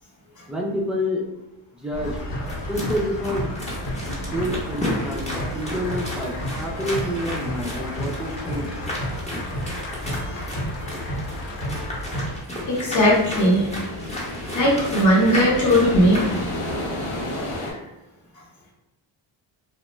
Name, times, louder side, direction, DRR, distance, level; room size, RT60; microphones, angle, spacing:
voice 1, 0.5-1.3 1.8-2.2 2.7-3.6 4.2-8.7, equal, ahead, -2 dB, 0.4 m, -28 dB
sound 1, 1.9-12.4, equal, 60° left, 1.0 m, -31 dB
sound 2, 2.5-16.4, left 1 dB, 15° left, 0.9 m, -34 dB
sound 3, 12.6-17.7, left 1 dB, 80° left, 0.8 m, -31 dB
voice 2, 12.7-13.7 14.5-16.2, equal, 40° left, -4 dB, 1.0 m, -18 dB
2.2 x 2.1 x 3.0 m, 0.99 s
cardioid pair, 80°, 49 cm